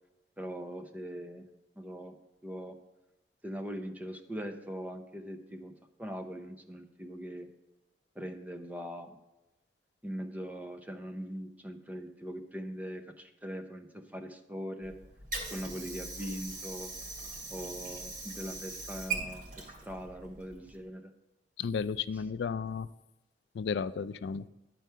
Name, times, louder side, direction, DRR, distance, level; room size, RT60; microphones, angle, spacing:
voice 1, 0.4-1.5 1.8-2.2 2.4-2.8 3.4-5.7 6.0-7.5 8.2-9.2 10.0-15.0 15.5-16.9 17.5-21.1, equal, 10° right, 7 dB, 0.6 m, -41 dB
Water / Sink (filling or washing), 14.8-20.8, right 3 dB, 55° right, 2.6 m, -41 dB
voice 2, 21.6-22.9 23.5-24.5, left 6 dB, 70° left, 16 dB, 0.3 m, -33 dB
11.0 x 4.6 x 5.6 m, 0.95 s
head